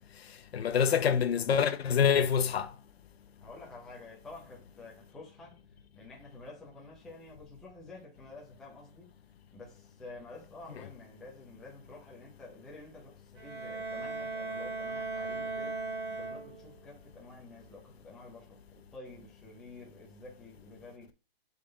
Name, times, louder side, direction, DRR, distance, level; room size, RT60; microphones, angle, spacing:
voice 1, 0.5-2.7, left 7 dB, 75° left, 0.9 m, -26 dB
voice 2, 3.4-5.6 5.9-9.1 9.5-21.1, left 2 dB, ahead, 0.5 m, -50 dB
Bowed string instrument, 13.4-16.9, right 3 dB, 40° right, 2.7 m, -37 dB
7.4 x 3.8 x 3.8 m
hypercardioid pair, 165°, 31 cm